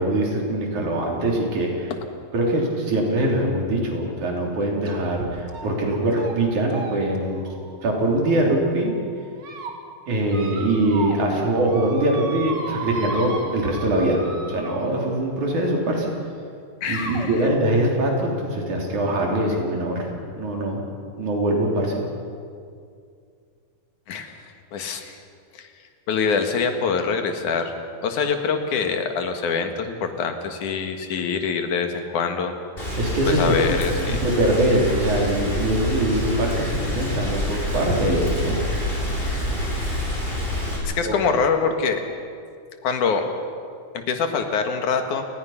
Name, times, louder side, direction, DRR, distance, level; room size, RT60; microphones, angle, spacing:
voice 1, 0.0-1.9 2.3-7.4 7.8-8.9 10.1-14.2 14.5-16.1 16.9-20.8 21.2-22.0 33.0-33.6 34.0-38.6 41.0-41.1, right 1 dB, 60° right, -1 dB, 4.9 m, -23 dB
sound 1, 4.9-5.1 5.5-5.8 6.1-6.3 6.7-8.6 9.1-9.7 10.3-11.3 11.5-15.2 16.1-16.2 16.9-17.3, right 3 dB, 35° right, 2.2 m, -35 dB
voice 2, 16.8-17.4 24.1-24.3 24.7-25.2 25.5-25.7 26.1-27.7 28.0-32.5 32.8-33.0 33.3-34.2 40.8-42.0 42.8-43.2 43.9-45.3, left 5 dB, 65° left, 6 dB, 3.0 m, -24 dB
Rain, 32.8-40.8, left 1 dB, 15° left, 5.8 m, -27 dB
29.5 x 20.0 x 5.8 m, 2.3 s
omnidirectional pair, 3.9 m